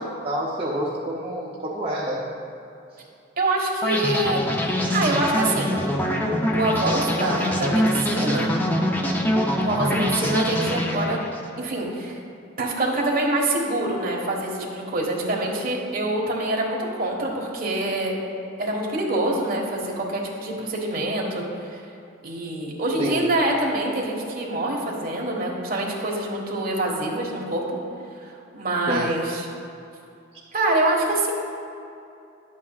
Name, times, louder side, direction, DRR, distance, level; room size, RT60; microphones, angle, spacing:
voice 1, 0.2-2.2 23.0-23.2 28.9-29.1, right 1 dB, 30° right, -6 dB, 0.7 m, -28 dB
voice 2, 3.4-4.4 4.9-5.8 6.5-8.5 9.6-11.2 11.6-12.2 12.6-18.1 18.6-21.8 22.2-27.6 28.5-29.5 30.5-31.3, right 1 dB, 50° right, -2 dB, 1.5 m, -25 dB
sound 1, 3.8-11.5, equal, 10° left, 0.6 m, -24 dB
12.0 x 8.3 x 2.4 m, 2.6 s
head